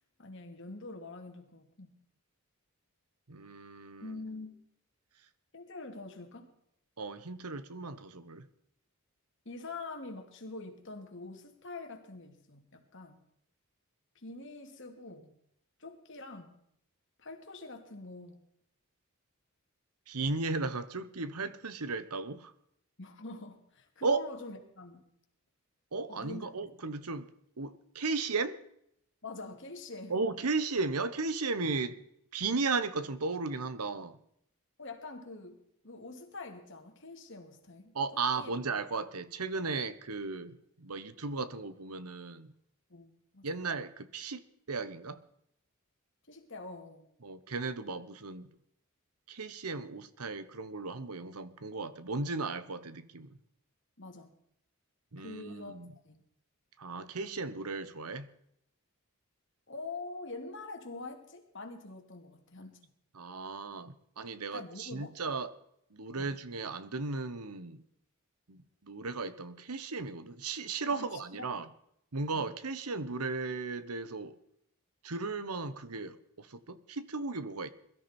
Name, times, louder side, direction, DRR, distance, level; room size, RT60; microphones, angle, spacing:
voice 1, 0.2-2.0 4.0-4.6 5.5-6.5 9.5-13.2 14.2-15.4 15.8-16.5 17.2-18.4 23.0-25.0 26.1-26.7 29.2-30.1 34.8-38.5 42.9-43.5 46.3-47.1 54.0-54.4 55.2-55.8 56.0-56.2 59.7-62.8 64.5-65.1 66.2-66.4 70.9-71.4 72.3-72.5, left 3 dB, 55° left, 2.5 m, -45 dB
voice 2, 3.3-4.2 7.0-8.5 20.1-22.5 24.0-24.2 25.9-27.3 27.6-28.6 30.1-32.0 32.3-34.2 37.9-42.5 43.4-45.2 47.2-48.5 49.3-53.4 55.1-55.9 56.8-58.3 63.1-65.5 65.9-67.8 68.5-71.7 72.1-74.4 75.0-77.7, right 3 dB, 90° right, 1.1 m, -35 dB
22.0 x 13.5 x 4.4 m
head